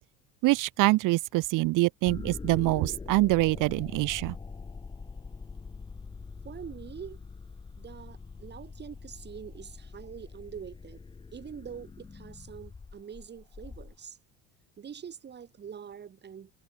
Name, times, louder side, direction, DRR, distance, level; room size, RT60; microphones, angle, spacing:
voice 1, 0.4-4.4, right 20 dB, 55° right, 0.5 m, -25 dB
sound 1, 2.0-14.0, left 4 dB, 10° left, 0.7 m, -43 dB
voice 2, 6.4-7.2 7.8-11.0 11.3-14.2 14.8-16.5, right 8 dB, 25° right, 1.8 m, -44 dB
cardioid pair, 155°, 39 cm